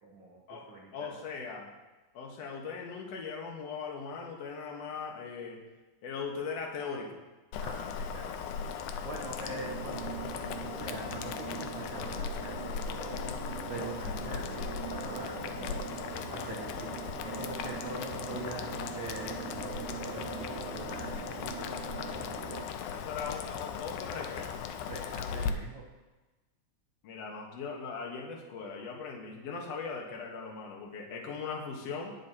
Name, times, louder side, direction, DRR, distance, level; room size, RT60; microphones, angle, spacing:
voice 1, 0.0-1.1 7.6-8.5 9.0-13.1 13.7-16.0 16.3-21.3 21.6-21.7 24.9-25.9, right 2 dB, 60° right, -3 dB, 1.2 m, -44 dB
voice 2, 0.9-1.7 2.1-5.6 6.0-7.2 22.9-24.6 27.0-32.1, left 5 dB, 60° left, 0 dB, 2.4 m, -39 dB
Boiling, 7.5-25.5, left 7 dB, 85° left, 2.2 m, -38 dB
sound 1, 9.5-22.7, right 10 dB, 85° right, 2.1 m, -43 dB
19.5 x 7.4 x 2.9 m, 1.2 s
omnidirectional pair, 3.5 m